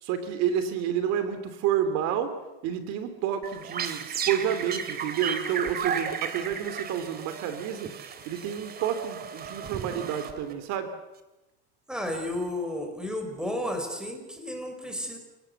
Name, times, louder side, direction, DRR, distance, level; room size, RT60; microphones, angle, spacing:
voice 1, 0.0-2.3 2.6-7.9 8.2-10.9, right 9 dB, 60° right, 10 dB, 3.0 m, -29 dB
sound 1, 3.4-10.7, right 7 dB, 30° right, 2.5 m, -34 dB
voice 2, 11.9-15.2, left 1 dB, ahead, 4 dB, 5.3 m, -32 dB
29.5 x 18.0 x 8.1 m, 1.0 s
supercardioid pair, 135°, 30 cm